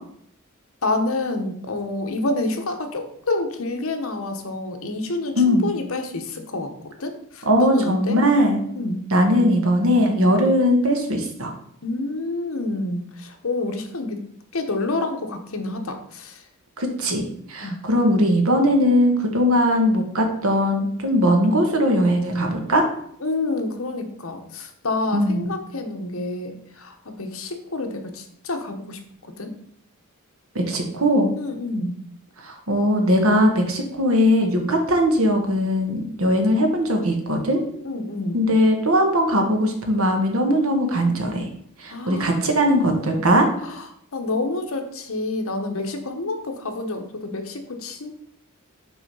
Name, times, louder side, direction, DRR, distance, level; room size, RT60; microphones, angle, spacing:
voice 1, 0.8-6.7 7.0-8.2 8.8-9.1 11.8-14.2 14.5-16.4 17.6-17.8 23.2-29.5 31.4-32.0 37.8-38.4 41.9-43.2 43.6-43.8 44.1-48.1, left 2 dB, 65° left, 5 dB, 1.0 m, -28 dB
voice 2, 5.4-5.7 7.4-8.7 9.1-11.5 16.8-22.8 25.1-25.6 30.5-31.4 32.4-37.6 38.3-41.5 41.8-43.5, equal, 70° right, 3 dB, 1.3 m, -20 dB
6.0 x 3.9 x 5.4 m, 0.68 s
head